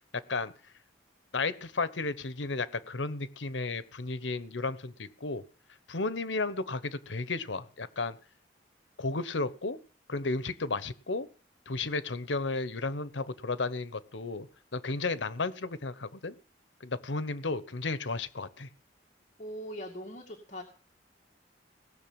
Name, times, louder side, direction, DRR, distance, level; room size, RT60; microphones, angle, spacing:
voice 1, 1.3-5.4 5.9-8.2 9.0-9.8 10.1-11.3 11.7-14.5 14.7-16.3 16.8-18.7, left 3 dB, 85° left, 15 dB, 1.1 m, -33 dB
voice 2, 19.4-20.6, equal, 40° left, 1 dB, 2.2 m, -41 dB
18.5 x 6.7 x 8.7 m, 0.39 s
head